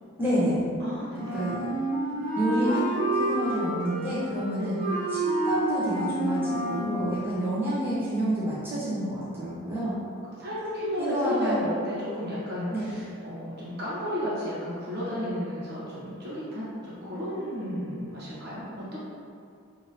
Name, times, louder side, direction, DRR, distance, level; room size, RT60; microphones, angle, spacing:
voice 1, 0.2-0.7 1.3-1.5 2.4-4.8 5.1-10.0 11.0-11.6 12.7-12.9, right 1 dB, 10° right, -13 dB, 0.9 m, -28 dB
voice 2, 0.8-1.3 4.6-4.8 10.4-19.0, left 1 dB, 50° right, -9 dB, 1.0 m, -33 dB
Wind instrument woodwind instrument, 1.2-7.0, right 2 dB, 35° left, 0.7 m, -29 dB
3.6 x 2.9 x 2.6 m, 2.4 s
head